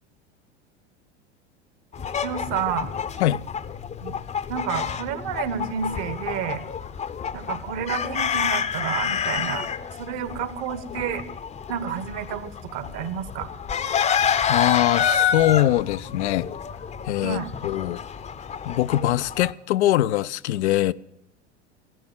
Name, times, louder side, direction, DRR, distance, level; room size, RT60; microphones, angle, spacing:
sound 1, 1.9-19.5, left 7 dB, 20° left, 0.7 m, -28 dB
voice 1, 2.2-2.9 4.0-4.1 4.5-6.6 7.3-9.7 10.0-11.2 11.7-13.5 17.2-17.5, right 8 dB, 50° right, 1.3 m, -30 dB
voice 2, 14.5-16.5 17.1-18.0 18.6-20.9, left 14 dB, 70° left, 0.5 m, -22 dB
15.5 x 11.0 x 7.5 m
hypercardioid pair, 90°, 35 cm